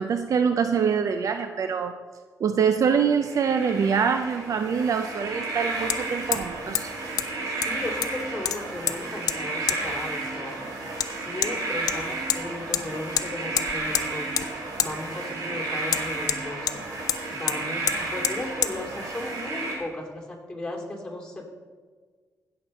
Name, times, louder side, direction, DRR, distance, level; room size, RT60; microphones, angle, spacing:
voice 1, 0.0-2.0 2.4-6.9, right 6 dB, 65° right, 7 dB, 0.5 m, -24 dB
sound 1, 3.2-19.8, right 2 dB, 90° right, 2.4 m, -32 dB
Hammer, 4.0-4.1 5.9-6.0 6.3-6.5 6.8-6.9 7.2-7.3 7.6-8.2 8.5-9.0 9.3-9.4 9.7-9.8 11.0-11.1 11.4-11.5 11.9-12.4 12.7-12.9 13.2-13.3 13.6-14.1 14.4-14.5 14.8-14.9 15.9-16.8 17.1-17.2 17.5-17.6 17.9-18.0 18.2-18.4 18.6-18.7, left 10 dB, 85° left, 0.6 m, -26 dB
voice 2, 7.4-10.6 11.0-21.5, left 1 dB, 15° left, 0 dB, 2.7 m, -36 dB
16.5 x 6.7 x 4.3 m, 1.5 s
cardioid pair, 85°, 6 cm